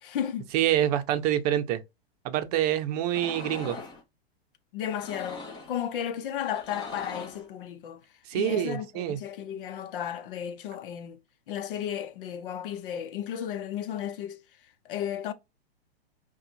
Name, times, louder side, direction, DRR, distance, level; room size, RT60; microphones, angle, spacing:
voice 1, 0.0-0.5 4.7-8.0 8.3-11.2 11.5-14.4 14.8-15.3, left 9 dB, 55° left, 0.9 m, -34 dB
voice 2, 0.5-1.8 2.2-3.8 8.3-9.2, right 11 dB, 40° right, 0.7 m, -26 dB
sound 1, 3.1-4.0 4.9-5.8 6.4-7.5, left 3 dB, 15° left, 0.8 m, -41 dB
5.5 x 2.4 x 2.7 m
hypercardioid pair, 145°, 31 cm